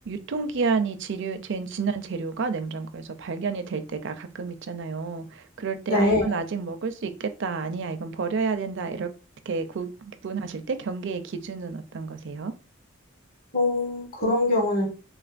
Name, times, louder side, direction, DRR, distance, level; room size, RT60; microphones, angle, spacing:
voice 1, 0.0-9.1 9.5-12.5, right 5 dB, 65° right, 0.5 m, -30 dB
voice 2, 5.9-6.2 13.5-14.9, left 2 dB, 45° left, 1.7 m, -23 dB
3.3 x 3.2 x 2.5 m
head